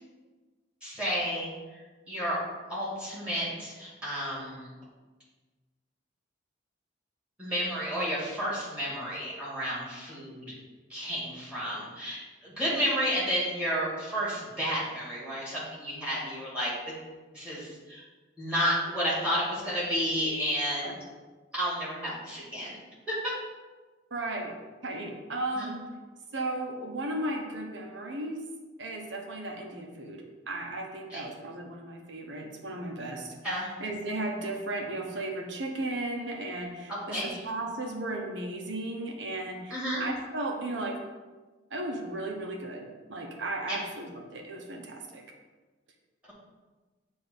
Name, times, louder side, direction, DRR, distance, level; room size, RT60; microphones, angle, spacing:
voice 1, 0.8-2.4 2.7-4.7 7.4-10.5 10.9-17.0 17.3-18.0 18.4-20.9 21.5-22.8 23.1-23.3 25.5-25.7 31.1-31.2 33.4-33.7 36.9-37.4 39.7-40.1 43.7-43.8, equal, 5° right, -7 dB, 2.0 m, -31 dB
voice 2, 24.1-24.6 24.8-25.8 26.3-28.4 28.8-33.3 33.8-41.0 41.7-45.2, right 2 dB, 65° right, 1 dB, 0.9 m, -35 dB
7.7 x 2.6 x 5.4 m, 1.3 s
head